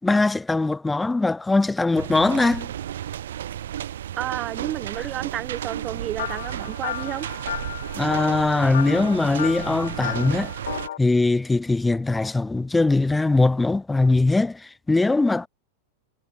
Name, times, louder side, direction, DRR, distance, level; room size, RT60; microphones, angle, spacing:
voice 1, 0.0-2.7 5.0-5.1 7.9-10.5 11.0-15.5, left 3 dB, 10° left, 1.7 m, -21 dB
sound 1, 2.0-10.9, right 11 dB, 60° right, 1.3 m, -33 dB
voice 2, 4.1-7.3, right 12 dB, 30° right, 0.6 m, -31 dB
sound 2, 6.2-11.0, left 11 dB, 60° left, 5.0 m, -33 dB
figure-of-eight pair, 90°, 0 cm